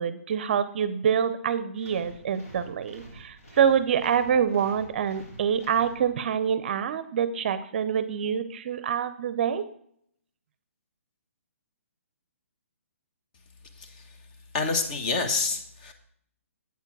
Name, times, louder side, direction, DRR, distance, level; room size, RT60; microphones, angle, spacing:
voice 1, 0.0-9.6, right 8 dB, 45° right, 13 dB, 0.5 m, -26 dB
sound 1, 1.8-6.5, right 1 dB, 80° left, 3.7 m, -48 dB
voice 2, 14.5-15.9, left 4 dB, 35° left, 6 dB, 1.1 m, -28 dB
8.2 x 4.5 x 6.0 m, 0.66 s
hypercardioid pair, 150°, 8 cm